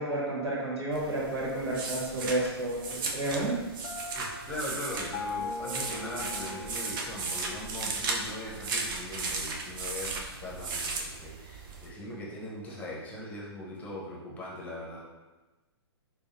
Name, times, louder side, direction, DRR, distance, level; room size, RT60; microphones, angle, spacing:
voice 1, 0.0-3.5, right 1 dB, 75° right, -4 dB, 1.5 m, -31 dB
Paging through a book, 0.9-11.9, right 3 dB, 50° right, 0.6 m, -36 dB
Piano, 3.8-7.7, left 4 dB, 35° left, 0.4 m, -40 dB
voice 2, 4.1-15.0, left 1 dB, 10° left, -4 dB, 0.9 m, -40 dB
4.9 x 2.3 x 2.6 m, 1.1 s
hypercardioid pair, 125°, 14 cm